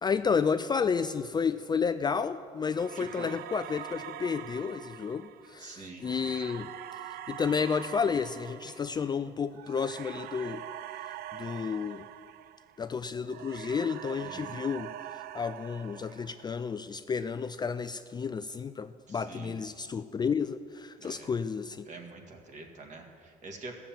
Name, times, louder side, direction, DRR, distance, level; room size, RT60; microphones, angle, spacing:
voice 1, 0.0-6.7 7.3-10.6 11.3-12.1 12.8-14.9 15.3-21.9, left 6 dB, 25° left, 11 dB, 0.3 m, -31 dB
sound 1, 2.7-12.9 13.3-16.7, right 12 dB, 70° right, 0.4 m, -44 dB
voice 2, 3.0-3.3 5.6-6.1 14.2-14.6 19.1-19.6 21.0-21.3 21.9-23.7, right 3 dB, 45° right, 3 dB, 2.0 m, -46 dB
15.5 x 7.0 x 7.4 m, 2.3 s
cardioid pair, 110°, 17 cm